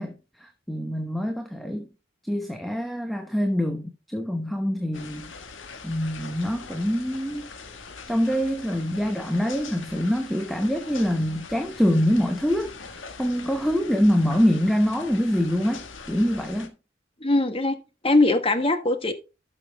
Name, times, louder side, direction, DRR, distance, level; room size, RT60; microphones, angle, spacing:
voice 1, 0.0-1.9 2.2-5.3 5.8-7.4 8.1-16.7, equal, ahead, 0.9 m, -25 dB
sound 1, 4.9-16.7, left 4 dB, 75° left, 1.5 m, -42 dB
voice 2, 17.2-17.8 18.0-19.1, left 2 dB, 30° left, 1.3 m, -21 dB
12.0 x 6.4 x 3.5 m
head